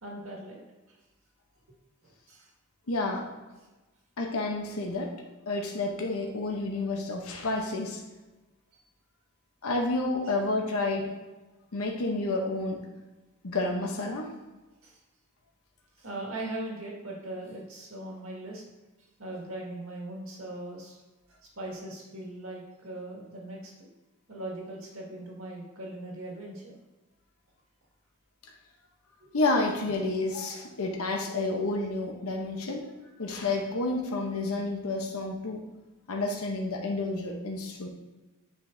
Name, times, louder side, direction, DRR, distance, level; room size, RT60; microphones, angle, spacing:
voice 1, 0.0-0.6 0.9-1.0 2.0-2.5 8.7-8.8 14.8-15.0 16.0-18.6 19.2-21.0 21.3-23.9 24.3-26.7 29.2-29.4 30.7-30.8, right 1 dB, 70° right, -2 dB, 1.8 m, -40 dB
voice 2, 2.9-3.3 4.2-8.0 9.6-11.1 11.7-12.8 13.4-14.3 29.3-35.6 36.1-37.9, left 2 dB, 85° left, 2 dB, 0.9 m, -30 dB
9.5 x 5.1 x 2.7 m, 1.1 s
head